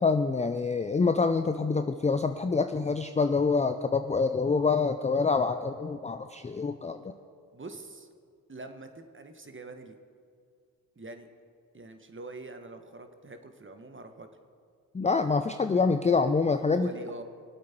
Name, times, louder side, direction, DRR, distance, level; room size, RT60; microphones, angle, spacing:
voice 1, 0.0-7.1 14.9-16.9, left 4 dB, 15° left, 9 dB, 0.5 m, -26 dB
voice 2, 7.5-8.1 8.5-9.9 10.9-11.3 11.7-14.3 16.7-17.2, right 2 dB, 25° right, 7 dB, 1.5 m, -44 dB
24.5 x 8.4 x 4.5 m, 2.2 s
hypercardioid pair, 40°, 49 cm